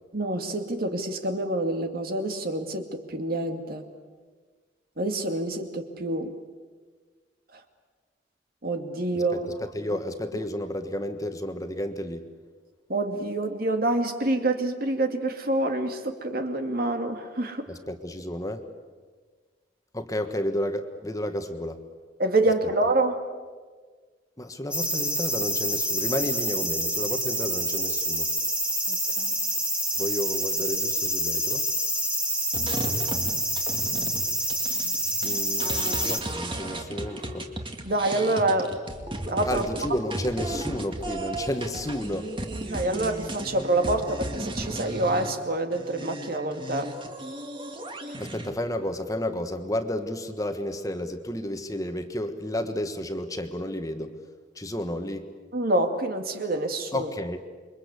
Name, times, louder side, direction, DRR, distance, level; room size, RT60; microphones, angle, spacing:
voice 1, 0.1-3.8 5.0-6.3 8.6-9.5 12.9-17.6 22.2-23.2 28.9-29.4 37.8-38.7 39.3-39.6 42.7-46.9 55.5-57.1, right 2 dB, 55° right, 6 dB, 2.4 m, -27 dB
voice 2, 9.3-12.2 17.7-18.6 19.9-21.8 24.4-28.3 30.0-31.6 35.2-37.5 39.4-42.3 48.2-54.1 54.6-55.2 56.9-57.4, left 1 dB, 20° left, 7 dB, 1.5 m, -31 dB
sound 1, 24.7-36.2, equal, 5° right, 2.6 m, -27 dB
sound 2, 32.5-45.3 45.7-48.5, right 1 dB, 25° right, 2.3 m, -35 dB
28.5 x 23.0 x 8.3 m, 1.5 s
head